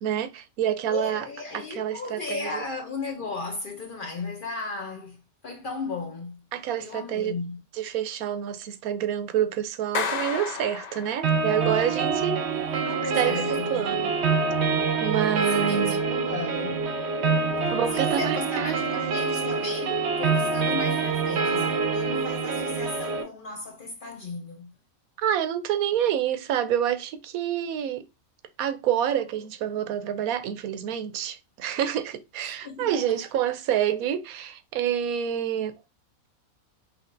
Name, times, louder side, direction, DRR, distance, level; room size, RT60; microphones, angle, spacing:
voice 1, 0.0-1.3 1.5-2.6 6.5-7.3 7.7-12.4 13.1-14.1 15.0-16.0 17.7-18.8 25.2-28.0 28.6-35.7, right 10 dB, 80° right, 1.0 m, -27 dB
voice 2, 0.9-6.4 6.8-7.6 12.8-13.9 15.5-16.9 17.6-24.7 32.5-33.0, left 3 dB, 50° left, 0.7 m, -35 dB
Clapping, 9.9-11.6, left 6 dB, 80° left, 0.3 m, -32 dB
sound 1, 11.2-23.2, right 4 dB, 55° right, 0.9 m, -26 dB
5.8 x 3.1 x 2.5 m
omnidirectional pair, 1.5 m